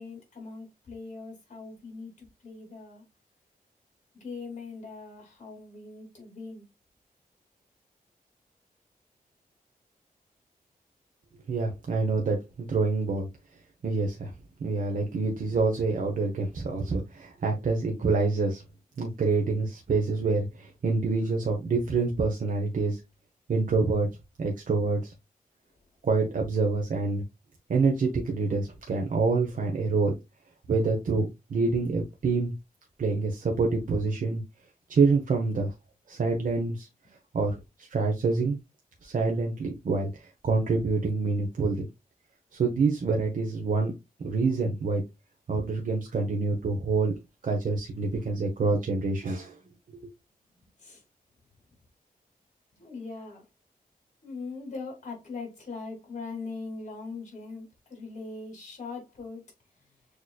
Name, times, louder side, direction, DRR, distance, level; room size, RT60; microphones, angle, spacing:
voice 1, 0.0-3.0 4.1-6.7 50.8-51.0 52.7-53.5 54.2-59.4, left 4 dB, 50° left, 2.5 m, -41 dB
voice 2, 11.5-13.3 13.8-14.3 14.6-18.6 19.0-23.0 23.5-24.1 24.4-25.1 26.0-27.2 27.7-30.1 30.7-32.5 33.0-34.4 34.9-35.7 36.1-36.9 37.3-38.6 39.0-41.9 42.5-43.9 44.2-45.0 45.5-47.1 47.4-49.6, right 4 dB, 65° right, 0.9 m, -26 dB
6.6 x 3.0 x 2.3 m
wide cardioid pair, 120°, 15 cm